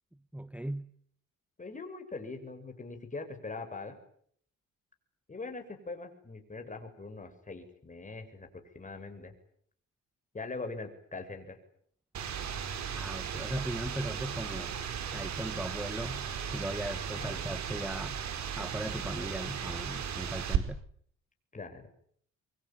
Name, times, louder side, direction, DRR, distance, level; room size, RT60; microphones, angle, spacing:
voice 1, 0.3-0.9 12.9-14.8 15.1-16.2 16.5-18.2 18.6-20.8, right 1 dB, 5° right, 1.1 m, -38 dB
voice 2, 1.6-4.0 5.3-9.3 10.3-11.6 16.9-17.4 21.5-21.9, left 3 dB, 25° left, 7.3 m, -42 dB
sound 1, 12.1-20.6, right 8 dB, 65° right, 4.8 m, -36 dB
25.5 x 25.0 x 9.1 m
cardioid pair, 90°, 30 cm